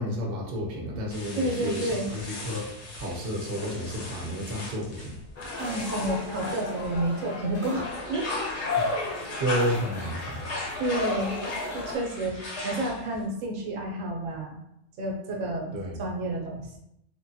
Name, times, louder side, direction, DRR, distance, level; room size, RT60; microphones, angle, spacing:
voice 1, 0.0-5.1 9.1-10.5 15.7-16.0, equal, 55° right, -1 dB, 0.8 m, -31 dB
sound 1, 1.1-7.3 7.7-13.2, left 2 dB, 65° left, 1.0 m, -38 dB
voice 2, 1.4-2.1 5.6-8.3 10.8-11.4 11.7-14.6 15.0-16.8, right 1 dB, 85° right, 0 dB, 1.0 m, -30 dB
sound 2, 5.3-11.9, left 2 dB, 45° left, 0.6 m, -34 dB
3.1 x 2.2 x 2.6 m, 0.78 s
omnidirectional pair, 1.3 m